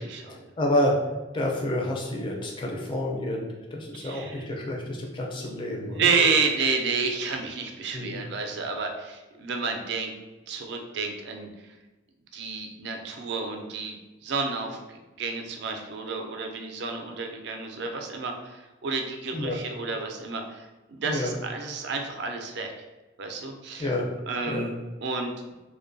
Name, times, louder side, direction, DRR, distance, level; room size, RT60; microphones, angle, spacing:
voice 1, 0.2-1.0 1.3-6.1 7.9-8.2 19.3-19.6 21.0-21.3 23.8-24.1 24.5-24.7, left 1 dB, 25° left, -1 dB, 0.4 m, -29 dB
voice 2, 3.9-4.4 5.9-10.1 10.5-11.5 12.3-14.0 14.2-22.7 23.2-23.9 24.3-24.7 25.0-25.3, right 4 dB, 60° right, 4 dB, 0.3 m, -30 dB
2.5 x 2.2 x 2.5 m, 1.1 s
head